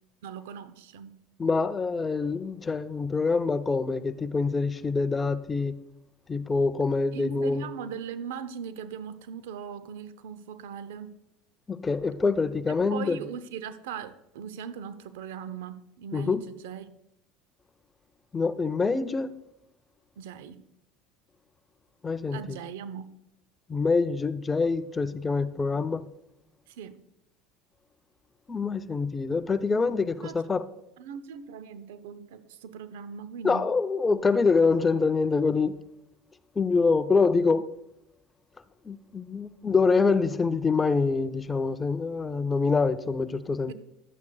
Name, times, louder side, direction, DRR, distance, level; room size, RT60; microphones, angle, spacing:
voice 1, 0.2-1.1 7.1-11.1 12.7-16.9 20.2-20.6 22.3-23.1 26.7-27.0 30.2-30.4 31.0-33.6 43.7-43.8, right 8 dB, 80° right, 0.6 m, -39 dB
voice 2, 1.4-5.7 6.3-7.6 11.7-13.2 16.1-16.4 18.3-19.3 22.0-22.6 23.7-26.0 28.5-30.6 33.4-35.7 36.6-37.7 38.8-43.7, left 4 dB, 20° left, 0.5 m, -25 dB
12.0 x 8.3 x 2.3 m
hypercardioid pair, 90°, 0 cm